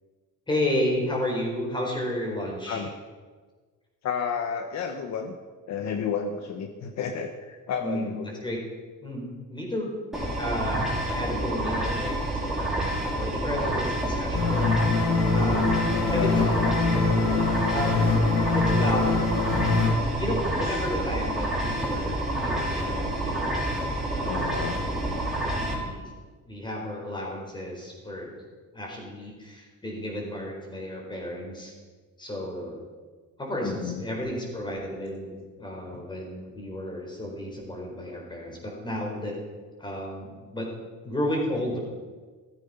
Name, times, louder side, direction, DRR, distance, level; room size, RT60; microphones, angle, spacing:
voice 1, 0.5-2.9 7.8-8.6 9.0-9.9 10.4-14.7 15.3-16.7 17.0-18.1 18.5-19.1 20.1-24.5 25.5-26.1 26.4-28.4 28.7-31.7 32.2-32.8 33.4-39.4 39.8-40.7 41.0-41.8, left 1 dB, 15° left, -1 dB, 4.2 m, -32 dB
voice 2, 4.0-5.4 5.7-8.2 11.3-11.7 16.1-16.6 20.6-20.8 24.3-24.8 25.4-25.5 33.6-34.0 35.9-36.0, left 6 dB, 55° left, 5 dB, 1.2 m, -32 dB
sound 1, 10.1-25.7, right 1 dB, ahead, 3.7 m, -28 dB
sound 2, 14.4-19.9, left 3 dB, 75° left, 2.9 m, -24 dB
14.5 x 14.5 x 5.6 m, 1.4 s
cardioid pair, 160°, 33 cm